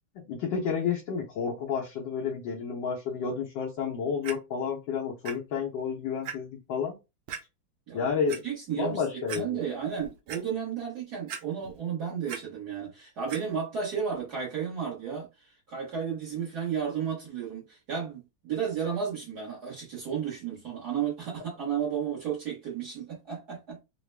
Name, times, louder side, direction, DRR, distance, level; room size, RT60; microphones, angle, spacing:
voice 1, 0.1-7.0 7.9-8.4 8.8-9.6, left 6 dB, 70° left, 1.5 m, -31 dB
Clock, 4.2-4.3 5.3-5.4 5.8-5.9 6.2-6.3 7.3-7.4 8.1-8.4 8.9-9.0 9.3-9.4 9.9-10.4 11.3-11.8 12.1-12.4 13.3-13.4 14.1-14.2, right 7 dB, 80° right, 1.5 m, -38 dB
voice 2, 8.4-9.0 9.3-15.3 15.7-23.8, right 7 dB, 55° right, 1.7 m, -33 dB
4.0 x 2.2 x 3.2 m
omnidirectional pair, 2.2 m